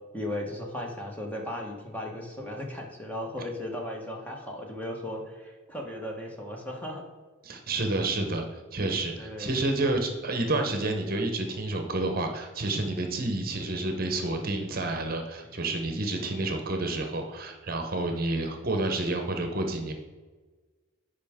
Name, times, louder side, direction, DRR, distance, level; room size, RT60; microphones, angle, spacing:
voice 1, 0.1-7.0 7.5-7.6 9.2-9.5, left 1 dB, 10° left, 0 dB, 1.2 m, -36 dB
voice 2, 7.4-8.4 8.7-19.9, right 2 dB, 45° right, 4 dB, 0.9 m, -29 dB
10.5 x 5.0 x 3.6 m, 1.3 s
head